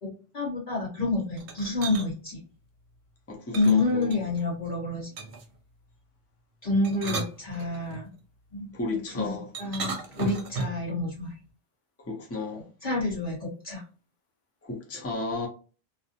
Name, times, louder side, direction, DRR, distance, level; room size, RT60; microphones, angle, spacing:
voice 1, 0.0-2.4 3.5-5.1 6.6-8.1 8.5-8.7 9.2-11.3 12.8-13.8, left 3 dB, 50° left, 1.1 m, -28 dB
sound 1, 1.4-2.1 3.5-4.5 5.2-5.6 6.7-8.0 9.5-10.9, right 4 dB, 65° right, 0.8 m, -35 dB
voice 2, 3.3-4.2 8.7-9.5 12.0-12.6 14.6-15.5, left 3 dB, 20° left, 0.5 m, -33 dB
2.5 x 2.0 x 2.6 m
omnidirectional pair, 1.0 m